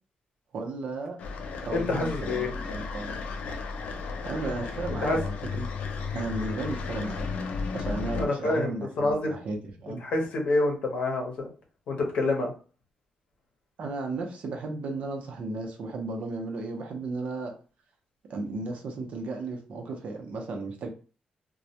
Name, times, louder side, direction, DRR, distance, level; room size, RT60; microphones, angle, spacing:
voice 1, 0.5-1.2 1.6-3.2 4.2-5.8 6.1-7.3 7.7-10.0 13.8-17.5 18.3-20.9, right 3 dB, 60° right, 2 dB, 0.6 m, -34 dB
sound 1, 1.2-8.3, left 4 dB, 80° left, 0.4 m, -34 dB
voice 2, 1.7-2.5 5.0-5.2 8.1-9.4 10.0-11.5 11.9-12.5, left 2 dB, 65° left, 1 dB, 0.7 m, -27 dB
2.2 x 2.1 x 2.7 m, 0.36 s
wide cardioid pair, 165°, 2 cm